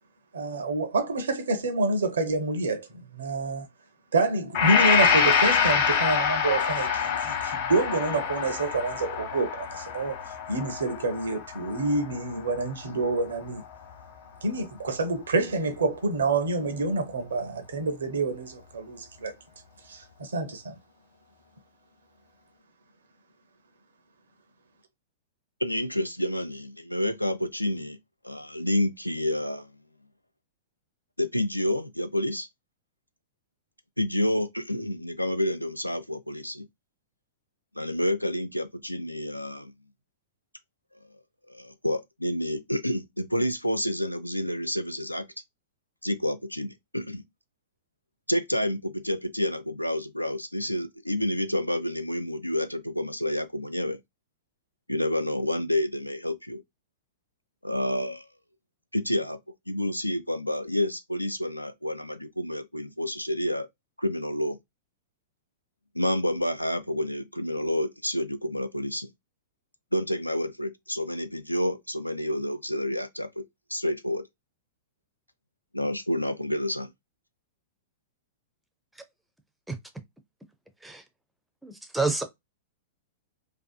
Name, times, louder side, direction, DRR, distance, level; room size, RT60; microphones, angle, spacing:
voice 1, 0.3-3.7 4.1-13.6 14.4-19.3 19.8-20.8, right 2 dB, 65° right, 0.6 m, -28 dB
Gong, 4.5-12.6, left 6 dB, 45° left, 0.9 m, -26 dB
voice 2, 25.6-28.0 28.2-29.8 31.2-32.5 34.0-36.7 37.8-39.7 41.5-45.2 46.0-47.2 48.3-54.0 54.9-56.6 57.6-58.3 58.9-59.4 59.7-63.7 64.0-64.6 65.9-69.1 69.9-73.4 73.7-74.2 75.7-76.9, left 1 dB, 90° left, 0.3 m, -29 dB
voice 3, 81.6-82.2, right 3 dB, 5° right, 0.5 m, -28 dB
2.6 x 2.4 x 2.3 m
figure-of-eight pair, 100°, 0 cm